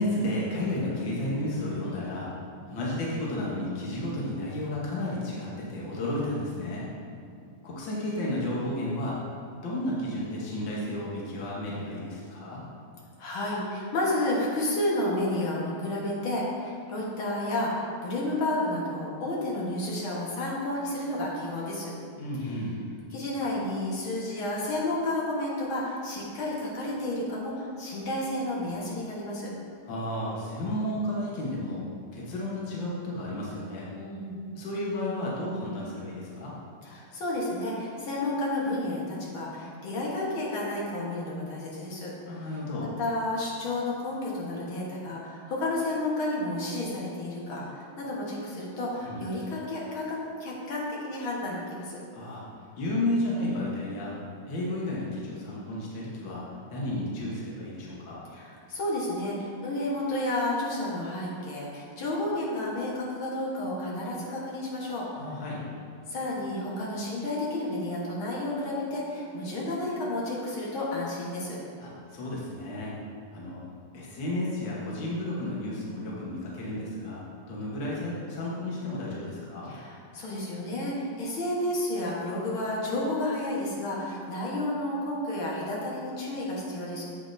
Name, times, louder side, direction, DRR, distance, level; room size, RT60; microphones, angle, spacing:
voice 1, 0.0-2.3 2.7-6.9 7.6-9.2 9.6-12.6 22.2-22.8 29.8-31.9 32.1-33.9 34.6-36.5 42.3-42.9 49.0-49.2 52.1-52.4 52.8-54.2 54.5-56.4 56.7-58.2 65.2-65.6 71.8-72.9 73.3-73.6 73.9-77.2 77.5-79.7, left 1 dB, 75° left, -5 dB, 1.0 m, -32 dB
voice 2, 13.2-21.9 22.4-22.5 23.1-29.5 33.9-34.4 36.8-42.5 43.0-52.0 58.3-65.2 66.1-71.6 79.7-87.0, left 1 dB, 55° left, -5 dB, 1.5 m, -31 dB
9.6 x 7.9 x 2.7 m, 2.3 s
omnidirectional pair, 4.0 m